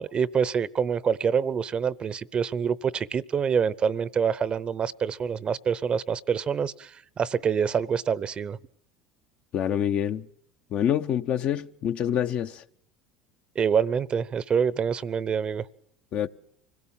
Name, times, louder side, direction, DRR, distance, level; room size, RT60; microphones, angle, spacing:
voice 1, 0.0-8.6 13.6-15.6, right 7 dB, 35° right, 0.8 m, -26 dB
voice 2, 9.5-10.3 10.7-12.6 16.1-16.3, left 10 dB, 50° left, 0.9 m, -26 dB
25.0 x 17.0 x 7.4 m
hypercardioid pair, 90°, 3 cm